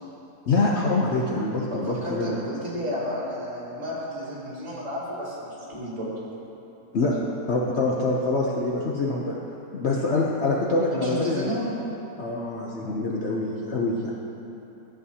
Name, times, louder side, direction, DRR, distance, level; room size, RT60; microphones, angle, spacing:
voice 1, 0.5-2.4 6.9-7.1 7.5-9.4 9.7-11.5 12.2-14.1, left 2 dB, 55° left, -3 dB, 0.8 m, -25 dB
voice 2, 1.7-6.1 10.9-11.7, equal, 45° right, -7 dB, 2.4 m, -32 dB
13.5 x 7.6 x 2.8 m, 3.0 s
omnidirectional pair, 1.7 m